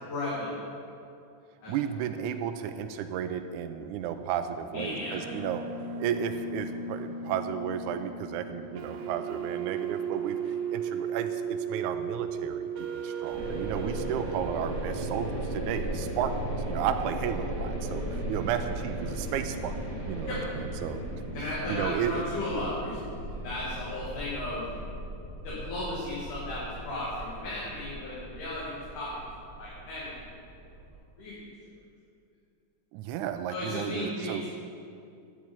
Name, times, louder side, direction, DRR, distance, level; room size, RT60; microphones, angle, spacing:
voice 1, 0.0-0.6 1.6-1.7 4.7-5.2 20.2-20.4 21.3-24.8 25.4-29.1 29.6-30.2 31.2-31.5 33.5-34.5, left 2 dB, 75° left, -8 dB, 4.0 m, -35 dB
voice 2, 1.7-5.6 6.0-10.4 10.7-16.3 16.7-19.7 20.1-21.2 21.7-22.2 32.9-34.4, right 9 dB, 85° right, 8 dB, 2.0 m, -33 dB
sound 1, 4.0-14.9, right 6 dB, 60° right, 1.9 m, -36 dB
sound 2, 13.3-30.9, right 1 dB, 35° left, 4.3 m, -36 dB
10.5 x 8.4 x 8.8 m, 2.5 s
omnidirectional pair, 3.6 m